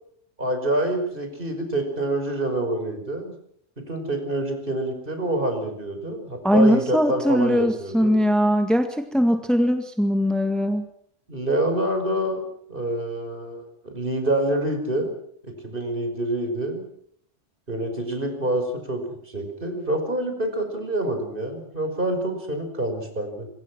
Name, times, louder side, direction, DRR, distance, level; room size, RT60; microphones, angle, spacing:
voice 1, 0.4-3.3 3.8-8.1 11.3-15.1 15.4-16.8 17.7-23.5, right 1 dB, 45° right, 6 dB, 5.6 m, -27 dB
voice 2, 6.4-10.9, equal, ahead, 6 dB, 1.8 m, -20 dB
26.5 x 24.0 x 6.2 m, 0.68 s
omnidirectional pair, 1.2 m